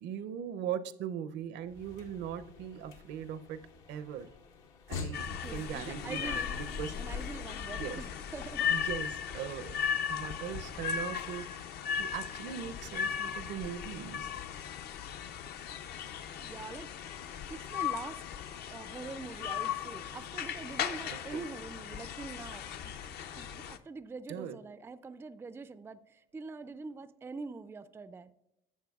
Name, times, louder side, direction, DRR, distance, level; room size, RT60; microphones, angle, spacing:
voice 1, 0.0-3.6 3.9-4.3 4.9-6.9 7.8-8.0 8.7-14.3 21.1-21.5 24.3-24.6, right 9 dB, 65° right, 14 dB, 0.6 m, -40 dB
sound 1, 1.6-9.5, left 4 dB, 80° left, 1.1 m, -47 dB
sound 2, 5.1-23.8, left 8 dB, 55° left, 0.6 m, -37 dB
voice 2, 5.4-6.6 6.9-8.8 16.4-17.2 17.5-18.2 18.7-28.3, right 4 dB, 10° right, 13 dB, 0.3 m, -44 dB
11.5 x 7.5 x 2.3 m, 0.86 s
supercardioid pair, 85°, 19 cm